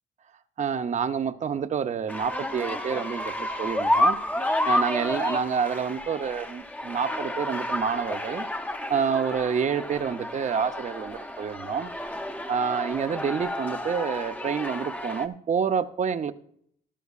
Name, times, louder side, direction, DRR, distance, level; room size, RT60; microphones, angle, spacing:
voice 1, 0.6-8.4 8.9-11.9 12.5-16.3, right 6 dB, 35° right, 11 dB, 0.6 m, -28 dB
sound 1, 2.1-15.2, left 1 dB, 5° left, 0.7 m, -30 dB
13.0 x 12.0 x 2.4 m, 0.65 s
cardioid pair, 90°, 20 cm